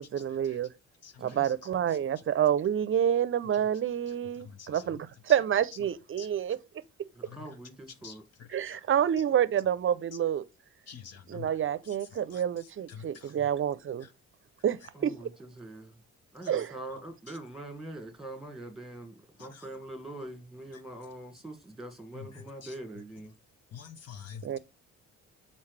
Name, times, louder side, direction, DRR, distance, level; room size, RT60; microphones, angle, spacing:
voice 1, 0.0-0.7 1.2-6.6 8.5-10.4 11.3-14.1 14.6-14.8 15.0-15.1 16.5-16.8 24.4-24.6, right 9 dB, 45° right, 0.6 m, -28 dB
voice 2, 1.0-1.5 4.4-4.8 6.2-6.3 7.3-7.5 8.0-8.8 10.9-11.5 12.3-12.4 12.9-13.3 19.4-19.6 22.1-22.7 23.7-24.6, left 7 dB, 55° left, 1.0 m, -47 dB
voice 3, 7.2-8.2 14.9-15.9 16.3-23.3, right 1 dB, ahead, 1.9 m, -43 dB
7.2 x 4.3 x 3.3 m
cardioid pair, 90°, 30 cm